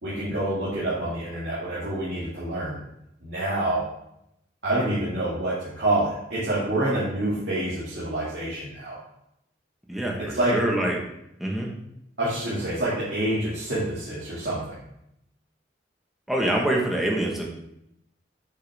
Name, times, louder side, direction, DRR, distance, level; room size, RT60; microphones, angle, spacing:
voice 1, 0.0-2.8 3.2-3.8 4.6-9.0 10.2-10.6 12.2-14.8, right 1 dB, 65° right, -10 dB, 2.3 m, -27 dB
voice 2, 9.9-11.0 11.4-11.7 16.3-17.5, right 1 dB, ahead, -2 dB, 1.4 m, -25 dB
8.2 x 6.4 x 3.5 m, 0.80 s
head